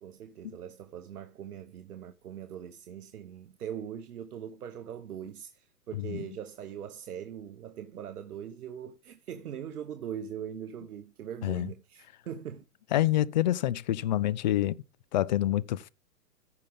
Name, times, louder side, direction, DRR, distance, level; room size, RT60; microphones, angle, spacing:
voice 1, 0.0-12.6, right 9 dB, 75° right, 1.2 m, -41 dB
voice 2, 5.9-6.3 11.4-11.7 12.9-14.8 15.1-15.9, left 13 dB, 30° left, 0.5 m, -27 dB
14.5 x 6.0 x 3.6 m
hypercardioid pair, 145°, 45 cm